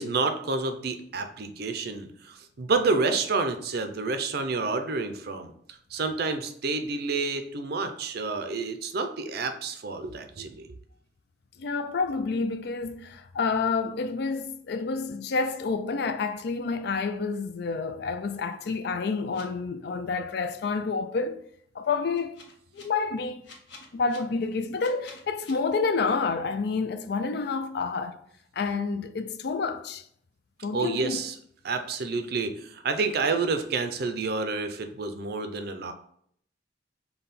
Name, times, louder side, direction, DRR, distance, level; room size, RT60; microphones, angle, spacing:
voice 1, 0.0-5.5 5.9-10.7 30.7-31.3 31.6-35.9, right 4 dB, 60° right, 0.5 m, -29 dB
voice 2, 11.6-21.4 21.7-22.4 22.7-23.4 23.9-28.2 28.6-30.0 30.6-31.2, left 4 dB, 60° left, 0.4 m, -29 dB
sound 1, 19.3-19.4 22.1-22.8 23.4-24.2 24.8-25.5, left 4 dB, 80° left, 1.1 m, -48 dB
5.5 x 2.2 x 4.1 m
head